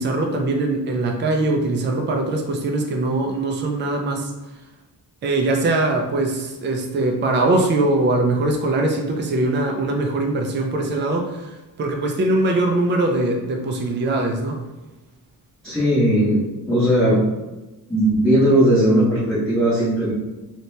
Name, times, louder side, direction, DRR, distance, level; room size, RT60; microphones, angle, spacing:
voice 1, 0.0-4.3 5.2-14.6, right 2 dB, 30° right, 2 dB, 0.4 m, -22 dB
voice 2, 15.6-17.2 17.9-20.1, right 1 dB, ahead, -12 dB, 0.8 m, -18 dB
2.9 x 2.8 x 3.2 m, 1.1 s
wide cardioid pair, 175°, 39 cm